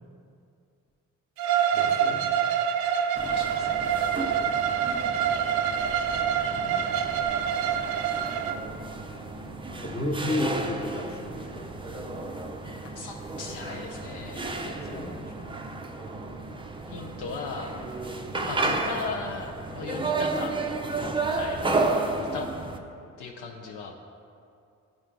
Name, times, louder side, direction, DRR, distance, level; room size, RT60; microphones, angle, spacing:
Bowed string instrument, 1.4-8.6, right 8 dB, 60° right, 0.5 m, -26 dB
voice 1, 1.7-2.2 6.5-6.8 9.7-11.7 14.6-15.7 18.3-18.5, left 1 dB, 20° left, 1 dB, 1.1 m, -33 dB
sound 1, 3.2-22.8, right 3 dB, 10° right, 0.5 m, -32 dB
voice 2, 3.3-3.7 12.8-14.5 16.9-17.7 18.5-20.8 21.3-21.7 22.2-22.5 23.2-23.9, left 4 dB, 65° left, 1 dB, 0.7 m, -37 dB
9.7 x 4.4 x 3.7 m, 2.4 s
hypercardioid pair, 40°, 44 cm